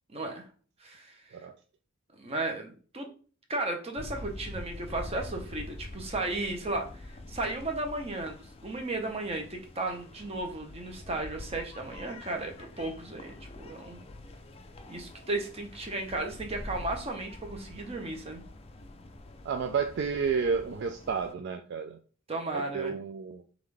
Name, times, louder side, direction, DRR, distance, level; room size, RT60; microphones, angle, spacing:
voice 1, 0.1-0.5 0.8-1.2 2.2-3.1 3.5-6.9 7.3-14.0 14.9-18.4 22.3-23.0, right 2 dB, 30° right, 3 dB, 0.9 m, -34 dB
sound 1, 4.0-21.3, left 2 dB, 30° left, 0.4 m, -45 dB
voice 2, 19.5-22.0 22.5-23.4, right 5 dB, 55° right, 7 dB, 0.3 m, -31 dB
3.7 x 3.6 x 3.4 m, 0.40 s
head